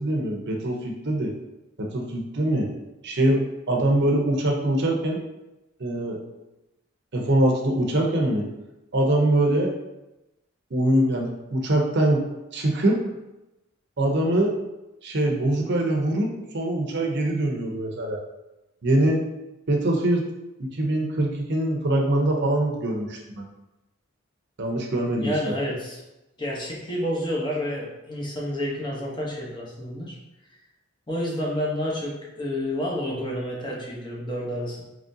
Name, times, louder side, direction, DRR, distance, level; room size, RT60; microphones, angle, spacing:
voice 1, 0.0-1.3 1.8-2.7 3.0-5.2 5.8-6.2 7.1-8.5 8.9-9.7 10.7-12.2 12.5-13.0 14.0-14.5 15.0-16.3 16.5-18.2 18.8-19.3 19.7-20.2 20.6-23.4 24.6-25.6, right 1 dB, 55° right, 1 dB, 0.7 m, -23 dB
voice 2, 25.2-26.0 26.4-30.2 31.1-34.8, equal, 20° left, -4 dB, 0.8 m, -29 dB
3.7 x 3.2 x 2.7 m, 0.96 s
head